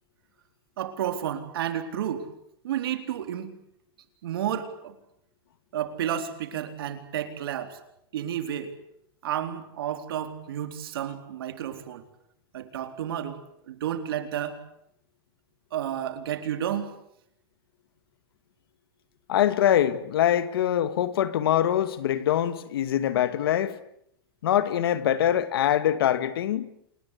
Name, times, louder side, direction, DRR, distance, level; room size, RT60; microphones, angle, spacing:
voice 1, 0.8-2.3 2.6-3.5 4.2-4.9 5.7-7.8 8.1-8.7 9.2-12.0 12.5-14.6 15.7-17.0, right 10 dB, 80° right, 4.0 m, -31 dB
voice 2, 19.3-23.8 24.4-26.7, left 11 dB, 80° left, 2.2 m, -24 dB
28.0 x 20.5 x 8.5 m
supercardioid pair, 145°, 12 cm